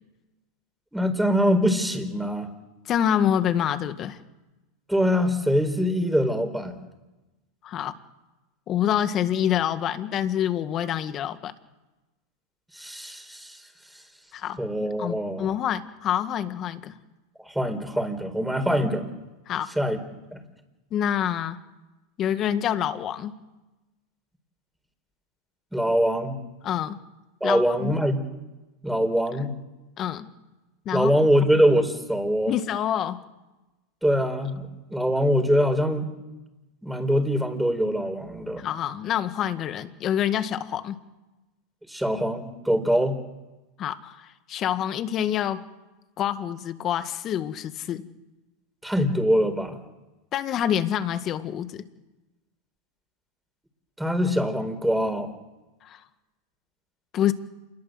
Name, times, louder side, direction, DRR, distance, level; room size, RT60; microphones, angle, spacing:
voice 1, 0.9-2.5 4.9-6.8 12.7-13.6 14.6-15.5 17.4-19.1 19.8-20.0 20.3-20.4 25.7-26.4 27.4-28.2 28.8-29.5 30.9-32.5 34.0-36.1 36.8-38.6 41.9-43.2 48.8-49.8 54.0-55.3, equal, 5° right, 7 dB, 4.3 m, -23 dB
voice 2, 2.9-4.2 7.6-7.9 8.7-11.5 14.3-17.0 19.5-19.8 20.9-21.6 22.2-23.3 26.6-27.0 27.4-28.0 30.0-30.3 30.9-31.1 32.5-33.2 38.6-41.0 43.8-45.7 46.2-48.1 50.3-51.8 55.8-56.0 57.1-57.3, left 10 dB, 40° left, 10 dB, 1.9 m, -27 dB
27.5 x 21.5 x 7.9 m, 1.1 s
hypercardioid pair, 110°, 0 cm